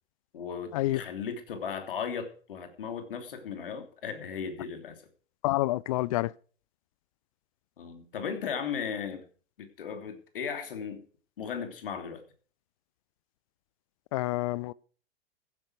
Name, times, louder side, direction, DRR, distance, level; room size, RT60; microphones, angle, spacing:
voice 1, 0.3-4.9 7.8-9.2 9.6-11.0 11.4-12.2, left 7 dB, 60° left, 3.1 m, -36 dB
voice 2, 5.4-6.3 14.1-14.7, left 17 dB, 35° left, 0.5 m, -28 dB
15.0 x 11.0 x 4.7 m
figure-of-eight pair, 100°, 31 cm